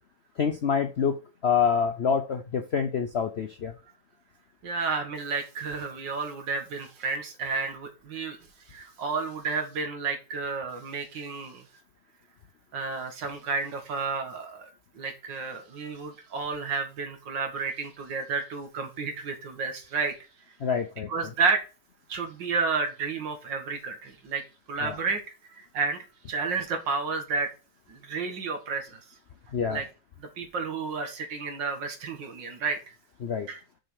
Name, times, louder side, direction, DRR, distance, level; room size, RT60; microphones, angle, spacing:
voice 1, 0.4-1.1 1.4-3.7 20.6-21.1 24.8-25.0 29.5-29.8 33.2-33.5, left 6 dB, 65° left, 7 dB, 0.6 m, -26 dB
voice 2, 4.6-8.4 8.7-11.7 12.7-20.2 21.1-21.7 22.1-24.4 24.7-25.2 25.6-27.5 27.9-29.0 29.7-29.8 30.2-32.9 33.5-33.6, right 4 dB, 85° right, 5 dB, 2.3 m, -31 dB
6.4 x 5.1 x 6.2 m, 0.32 s
omnidirectional pair, 1.9 m